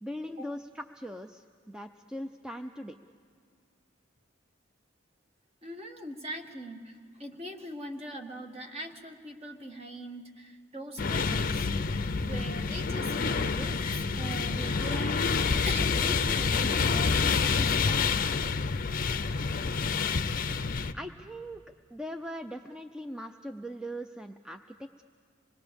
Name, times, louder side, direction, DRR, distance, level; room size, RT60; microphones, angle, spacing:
voice 1, 0.0-3.0 20.9-21.6 21.9-25.0, equal, 5° right, 6 dB, 0.5 m, -40 dB
voice 2, 5.6-11.7 12.2-15.2 15.6-18.4, right 1 dB, 30° right, 3 dB, 1.7 m, -41 dB
sound 1, 11.0-20.9, left 5 dB, 45° left, 0.6 m, -28 dB
26.0 x 20.5 x 7.0 m, 2.3 s
head